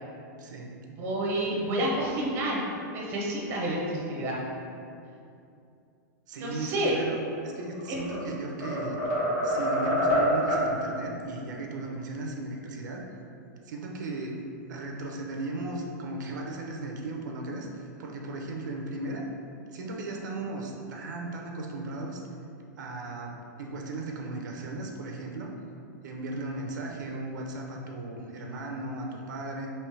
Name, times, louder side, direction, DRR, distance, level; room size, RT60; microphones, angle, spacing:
voice 1, 0.4-0.7 6.3-9.1 9.4-13.0 13.6-14.4 14.7-19.3 19.7-22.2 22.8-25.5 26.0-29.7, right 2 dB, 75° right, 1 dB, 0.6 m, -36 dB
voice 2, 1.0-2.6 2.9-4.4 6.4-6.9 7.9-8.0, right 1 dB, 25° right, -3 dB, 0.7 m, -29 dB
sound 1, 7.7-8.2 8.6-10.7, equal, 45° left, 1.4 m, -26 dB
3.2 x 3.0 x 4.7 m, 2.5 s
supercardioid pair, 170°, 10 cm